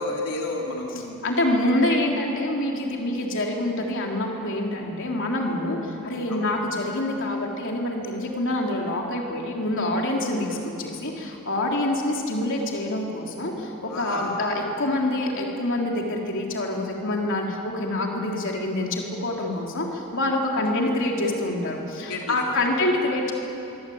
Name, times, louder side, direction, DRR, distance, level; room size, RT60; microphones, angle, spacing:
voice 1, 0.0-1.2 6.3-6.4 13.9-14.4 20.6-20.7 22.1-22.3 22.6-22.7, left 2 dB, 85° left, -1 dB, 3.1 m, -31 dB
voice 2, 1.2-23.3, left 1 dB, 60° left, 0 dB, 3.7 m, -26 dB
24.5 x 23.0 x 8.8 m, 2.9 s
head